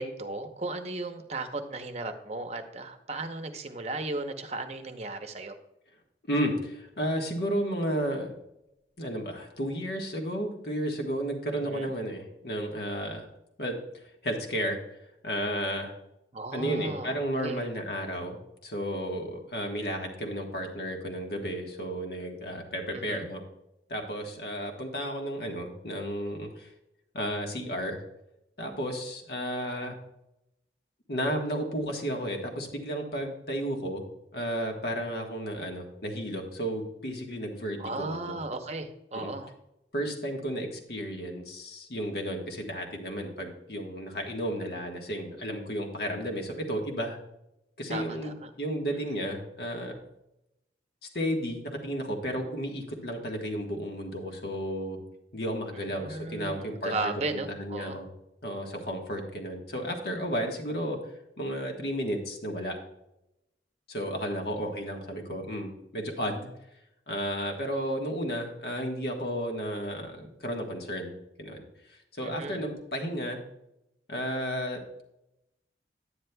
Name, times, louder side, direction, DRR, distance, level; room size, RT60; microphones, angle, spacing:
voice 1, 0.0-5.6 11.5-11.9 16.3-17.5 22.9-23.3 37.8-39.5 47.9-48.5 55.7-58.0 72.2-72.6, right 2 dB, 35° right, 7 dB, 0.8 m, -36 dB
voice 2, 6.3-8.3 9.0-13.3 13.6-14.8 15.2-15.9 16.5-23.4 23.9-26.7 27.1-28.0 28.6-30.0 31.1-34.1 34.3-38.3 39.1-39.3 39.9-47.2 47.8-49.9 51.1-55.0 55.3-58.1 58.4-61.0 61.4-62.8 63.9-66.5 67.1-71.6 71.9-73.4 74.1-75.0, equal, 60° left, 2 dB, 1.4 m, -33 dB
10.0 x 9.4 x 2.3 m, 0.85 s
head